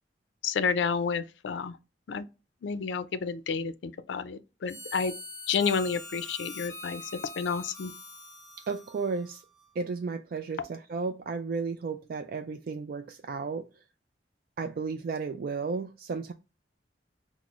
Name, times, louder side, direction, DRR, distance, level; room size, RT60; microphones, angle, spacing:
voice 1, 0.4-1.8 2.1-2.3 2.6-5.1 5.5-7.9, left 5 dB, 80° left, 0.4 m, -30 dB
Harmonica, 4.7-9.8, left 2 dB, 20° left, 0.6 m, -44 dB
voice 2, 8.7-9.4 9.8-13.7 14.6-16.3, right 4 dB, 55° right, 0.3 m, -33 dB
5.9 x 2.0 x 2.4 m
head